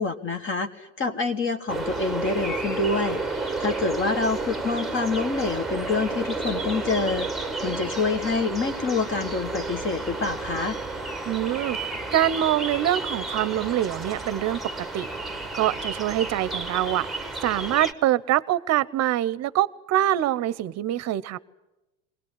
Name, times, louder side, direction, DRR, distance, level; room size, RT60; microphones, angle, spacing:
voice 1, 0.0-3.2 3.6-7.3 7.6-10.8, left 4 dB, 30° left, 8 dB, 1.3 m, -27 dB
sound 1, 1.7-17.9, right 3 dB, ahead, 1.2 m, -31 dB
voice 2, 11.3-15.1 15.5-17.1 17.4-21.4, right 13 dB, 45° right, 19 dB, 0.8 m, -25 dB
21.5 x 18.5 x 9.8 m, 1.0 s
supercardioid pair, 110°, 38 cm